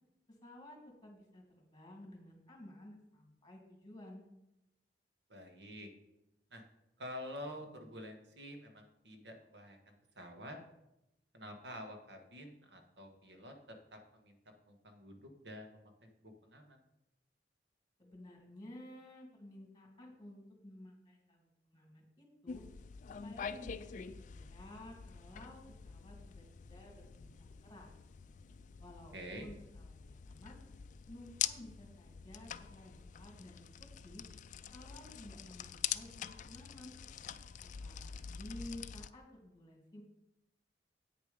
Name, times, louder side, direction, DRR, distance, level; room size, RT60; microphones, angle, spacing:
voice 1, 0.4-4.2 18.0-22.6 23.2-27.9 28.8-30.6 31.1-34.2 34.7-36.9 37.6-40.0, left 1 dB, 25° left, 1 dB, 2.5 m, -53 dB
voice 2, 5.3-5.9 6.5-6.6 7.0-10.6 11.3-14.4 14.6-16.8 29.1-29.5, equal, 80° right, 4 dB, 1.5 m, -49 dB
sound 1, 22.5-39.1, left 8 dB, 45° left, 0.3 m, -45 dB
8.6 x 6.8 x 5.1 m, 0.89 s
head